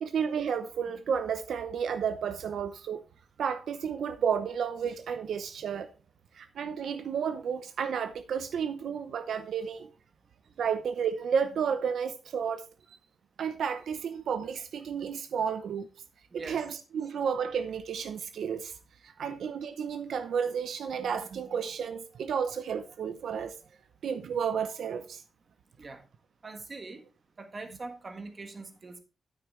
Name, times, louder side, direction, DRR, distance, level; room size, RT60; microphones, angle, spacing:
voice 1, 0.0-3.0 3.4-5.9 6.3-9.9 10.6-13.0 13.4-15.9 16.3-18.7 19.0-23.6 24.0-25.2, right 7 dB, 85° right, 0.7 m, -32 dB
voice 2, 16.3-16.6 19.2-19.4 25.8-26.1 26.4-27.1 27.4-29.0, right 3 dB, 35° right, 1.5 m, -43 dB
9.2 x 9.1 x 3.2 m
wide cardioid pair, 145°, 0 cm